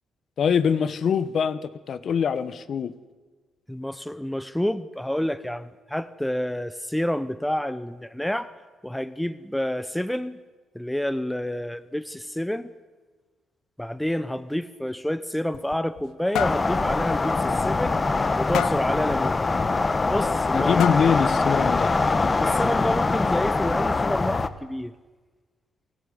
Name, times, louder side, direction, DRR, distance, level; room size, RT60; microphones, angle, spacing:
voice 1, 0.4-2.9 20.5-21.9, left 7 dB, 55° left, 1.1 m, -23 dB
voice 2, 3.7-8.5 8.8-10.4 10.7-12.7 13.8-18.0 18.4-19.4 20.0-21.0 22.4-24.9, left 1 dB, 5° left, 0.9 m, -29 dB
sound 1, 15.3-16.1 16.3-16.7 17.1-17.2 17.6-17.7 18.5-18.9 20.1-20.2 20.8-21.3, left 11 dB, 75° left, 0.6 m, -28 dB
sound 2, 16.4-24.5, left 3 dB, 25° left, 1.1 m, -23 dB
28.5 x 12.0 x 9.8 m
cardioid pair, 90°, 0 cm